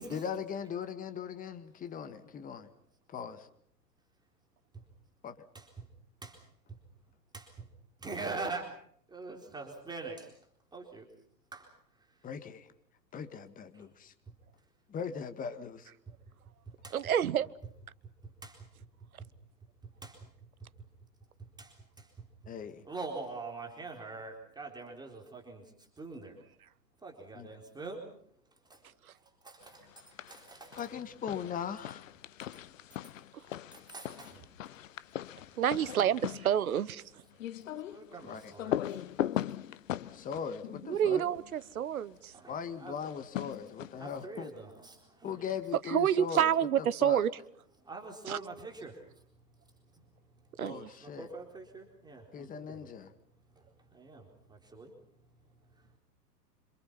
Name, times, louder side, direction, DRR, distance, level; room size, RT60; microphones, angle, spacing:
voice 1, 0.1-2.7 3.1-3.5 5.2-5.4 12.2-12.7 13.1-14.1 14.9-15.9 22.5-22.8 27.4-27.5 30.8-32.0 38.2-38.5 40.1-41.2 42.5-44.5 45.2-46.5 46.8-47.2 50.6-51.3 52.3-53.1, left 7 dB, 15° left, 10 dB, 1.9 m, -39 dB
voice 2, 5.5-5.9 6.2-6.4 7.3-7.7 8.0-8.8 9.1-10.3 10.7-11.1 11.5-11.7 13.2-13.3 13.7-13.8 16.1-16.2 16.8-17.0 18.2-18.7 19.2-19.3 19.8-20.3 20.6-20.7 21.4-22.2 22.8-26.4 27.0-28.1 28.7-28.8 29.4-30.9 33.7-34.4 35.5-35.6 36.0-36.1 37.9-39.0 41.0-41.5 42.3-43.1 43.5-45.4 47.8-49.2 49.9-50.0 51.0-52.9 53.5-53.6 53.9-54.9, right 3 dB, 10° right, 0 dB, 4.1 m, -44 dB
voice 3, 16.9-17.5 33.3-33.4 35.6-37.2 40.8-42.3 45.7-47.3 48.3-48.4 50.6-50.9, right 9 dB, 60° right, 19 dB, 1.2 m, -28 dB
sound 1, 29.9-30.4 30.7-41.7 43.0-44.2, left 12 dB, 50° left, 1.0 m, -39 dB
27.0 x 27.0 x 5.8 m, 0.64 s
figure-of-eight pair, 110°, 49 cm